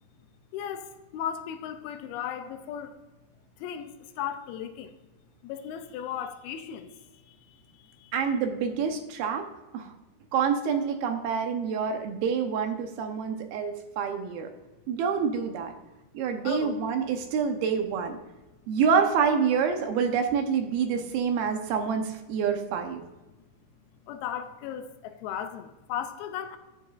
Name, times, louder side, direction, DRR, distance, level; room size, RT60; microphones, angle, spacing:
voice 1, 0.5-3.0 3.6-5.0 5.4-8.2 14.5-14.6 15.8-15.9 16.4-16.8 21.0-21.1 23.3-23.4 24.0-26.6, left 9 dB, 80° left, 2.6 m, -36 dB
voice 2, 8.1-9.4 9.7-9.9 10.3-14.5 14.9-15.7 16.1-18.2 18.7-23.0, right 6 dB, 75° right, 2.7 m, -27 dB
12.0 x 9.1 x 2.5 m
omnidirectional pair, 4.6 m